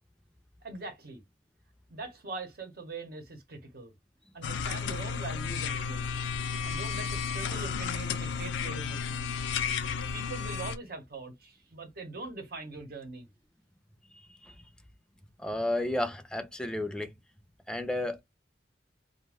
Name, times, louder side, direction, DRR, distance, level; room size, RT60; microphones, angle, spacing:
voice 1, 0.6-1.2 1.9-3.9 4.3-6.1 6.6-9.3 10.1-13.3, right 3 dB, 60° right, 0.9 m, -42 dB
sound 1, 4.4-10.8, left 6 dB, 90° left, 0.4 m, -33 dB
voice 2, 15.4-17.1 17.7-18.2, left 1 dB, 5° left, 0.4 m, -32 dB
2.5 x 2.1 x 3.3 m
head